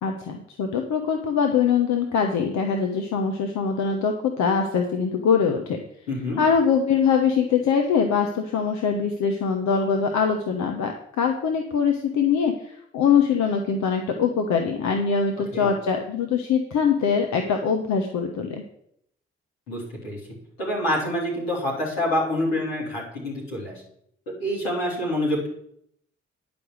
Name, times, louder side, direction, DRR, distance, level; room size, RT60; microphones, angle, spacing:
voice 1, 0.0-5.8 6.4-18.6, left 6 dB, 70° left, 4 dB, 1.2 m, -23 dB
voice 2, 6.1-6.4 15.5-15.7 19.7-20.2 20.6-23.7 24.4-25.5, left 1 dB, 90° left, -4 dB, 3.5 m, -26 dB
10.5 x 5.3 x 8.0 m, 0.71 s
hypercardioid pair, 40°, 30 cm